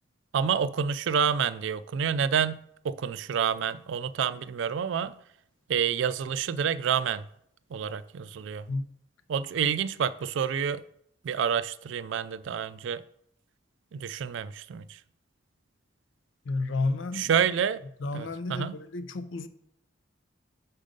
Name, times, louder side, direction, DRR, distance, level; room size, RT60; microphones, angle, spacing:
voice 1, 0.3-5.1 5.7-7.2 7.7-8.6 9.3-10.8 11.2-13.0 13.9-14.9 17.2-17.8 18.1-18.7, right 7 dB, 70° right, 0.3 m, -28 dB
voice 2, 16.4-17.3 18.0-19.5, left 3 dB, 80° left, 0.6 m, -31 dB
6.1 x 5.2 x 5.1 m
head